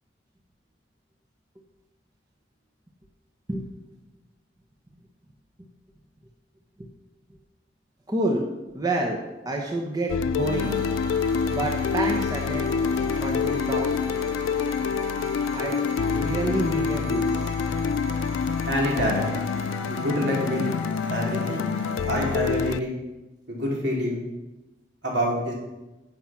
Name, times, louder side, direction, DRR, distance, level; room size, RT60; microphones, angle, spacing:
voice 1, 8.1-8.5 8.7-10.8 11.5-12.8 13.2-14.1 15.5-15.8 16.1-17.4, right 2 dB, 20° right, 0 dB, 1.0 m, -28 dB
sound 1, 10.1-22.8, left 6 dB, 85° left, 0.3 m, -27 dB
sound 2, 10.4-22.5, left 1 dB, 80° right, 4.5 m, -37 dB
voice 2, 18.7-19.2 19.9-20.6 21.1-21.6 22.1-23.0 23.5-24.2 25.0-25.5, equal, 65° right, -3 dB, 3.8 m, -26 dB
11.0 x 7.5 x 6.0 m, 1.1 s
head